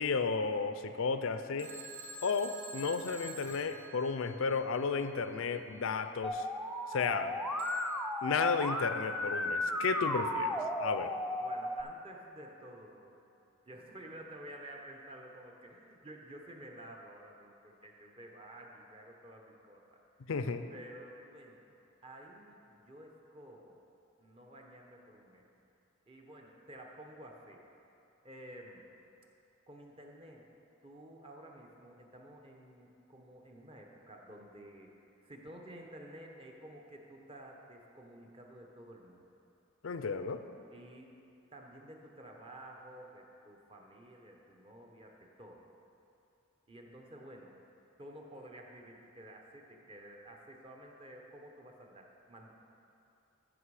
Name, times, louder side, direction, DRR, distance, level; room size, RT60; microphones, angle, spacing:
voice 1, 0.0-1.7 2.2-6.4 6.9-7.3 8.2-11.2 20.3-20.7 39.8-40.5, left 5 dB, 80° left, 9 dB, 0.5 m, -33 dB
Telephone, 1.6-4.6 7.6-8.0, right 2 dB, 75° right, 1.2 m, -47 dB
Musical instrument, 6.2-11.8, left 1 dB, ahead, 0.4 m, -35 dB
voice 2, 11.4-13.2 13.6-20.3 20.7-21.6 22.0-23.8 24.2-25.5 26.1-27.7 28.2-28.8 29.7-30.5 30.8-35.0 35.2-39.3 40.7-41.2 41.5-45.7 46.7-47.6 48.0-52.5, right 1 dB, 30° right, 0 dB, 1.0 m, -52 dB
14.0 x 6.1 x 4.9 m, 2.7 s
head